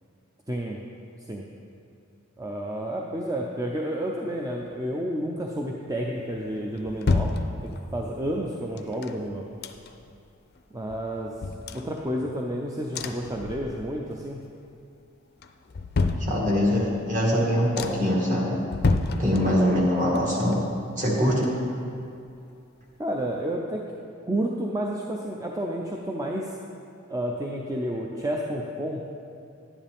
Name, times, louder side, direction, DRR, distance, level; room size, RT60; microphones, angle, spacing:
voice 1, 0.5-0.8 1.3-1.4 2.4-7.3 7.6-9.5 10.7-11.3 11.7-14.4 19.2-19.4 23.0-23.8 24.2-26.6 27.1-29.0, right 1 dB, 15° right, -1 dB, 0.5 m, -30 dB
sound 1, 6.3-8.1 8.8-10.2 10.5-10.6 10.9-12.5 12.9-14.1 14.4-14.9 15.4-16.9 17.3-17.4 17.7-18.2 18.6-19.9 20.1-22.0 22.3-22.4, left 3 dB, 50° left, 0.5 m, -30 dB
voice 2, 16.3-18.6 19.2-20.6 21.0-21.5, equal, 40° right, -4 dB, 2.0 m, -23 dB
10.5 x 9.9 x 3.5 m, 2.4 s
head